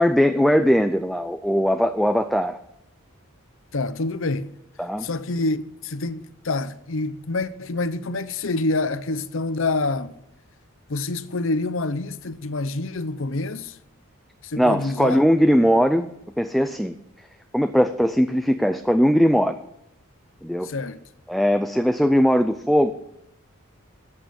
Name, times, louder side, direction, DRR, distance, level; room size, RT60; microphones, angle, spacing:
voice 1, 0.0-2.6 4.8-5.1 14.6-17.0 17.5-19.6 20.4-20.7 21.3-22.9, equal, ahead, 0.4 m, -20 dB
voice 2, 3.7-4.5 5.0-10.1 10.9-13.8 14.4-15.2 20.6-21.0, left 2 dB, 60° left, 0.8 m, -27 dB
14.0 x 8.6 x 7.0 m
head